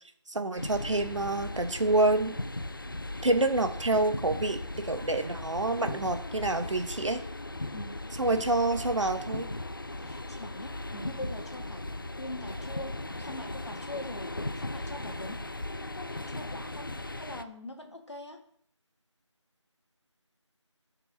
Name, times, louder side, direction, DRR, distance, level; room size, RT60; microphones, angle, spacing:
voice 1, 0.3-2.3 3.2-7.2 8.2-9.5, right 2 dB, 80° right, 8 dB, 0.9 m, -27 dB
sound 1, 0.6-17.4, left 2 dB, 45° left, 0.4 m, -38 dB
voice 2, 10.0-11.8 12.2-16.9 17.2-18.4, left 1 dB, 65° left, 2 dB, 1.5 m, -43 dB
10.5 x 4.6 x 2.6 m, 0.64 s
figure-of-eight pair, 175°, 16 cm